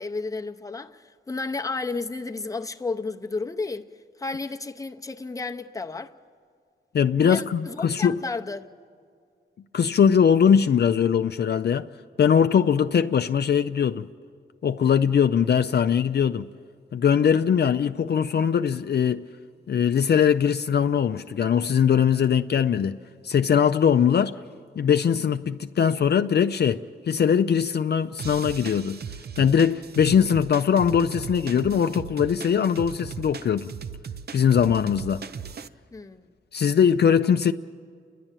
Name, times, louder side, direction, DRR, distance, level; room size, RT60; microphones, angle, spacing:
voice 1, 0.0-3.9 4.2-6.1 7.2-8.7 35.9-36.2, left 3 dB, 15° left, 0.7 m, -32 dB
voice 2, 6.9-8.2 9.7-11.9 12.2-14.1 14.6-16.5 16.9-19.3 19.7-23.0 23.2-24.4 24.8-29.0 29.4-33.7 34.3-35.2 36.5-37.5, left 7 dB, 60° left, 0.4 m, -21 dB
sound 1, 28.2-35.7, right 6 dB, 55° right, 0.5 m, -37 dB
29.5 x 11.0 x 9.0 m
wide cardioid pair, 115°, 20 cm